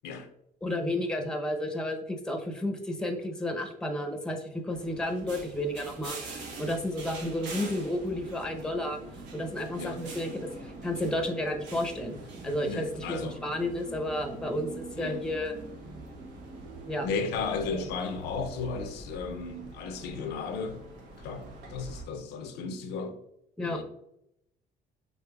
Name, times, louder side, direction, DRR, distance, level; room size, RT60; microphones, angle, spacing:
voice 1, 0.6-9.0 9.3-12.1 12.4-15.5 16.9-17.1 17.7-17.9 23.6-23.8, left 1 dB, 5° left, 0.7 m, -32 dB
sound 1, 4.7-22.0, right 2 dB, 90° right, 1.1 m, -44 dB
voice 2, 12.6-13.4 15.0-15.2 17.0-20.8 21.2-21.4 21.7-23.2 23.6-23.8, left 4 dB, 80° left, 0.6 m, -34 dB
5.4 x 3.6 x 2.3 m
cardioid pair, 110°, 17 cm